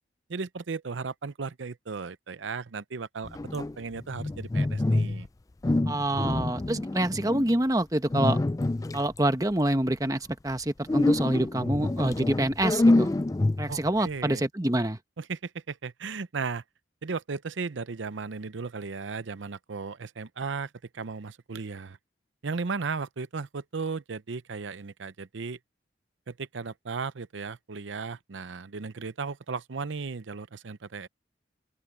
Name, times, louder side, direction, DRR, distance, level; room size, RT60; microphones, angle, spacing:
voice 1, 0.3-5.3 13.7-14.4 15.2-16.6 17.0-22.0 22.4-25.6 26.3-31.1, right 4 dB, 80° right, 0.7 m, -35 dB
Wasser - Badewanne halbvoll Bewegung, 3.2-5.3 5.6-7.5 8.1-9.2 10.9-13.9, left 2 dB, 20° left, 0.3 m, -26 dB
voice 2, 5.9-8.4 8.9-13.2 13.6-15.0, right 1 dB, 20° right, 1.1 m, -26 dB
open air
head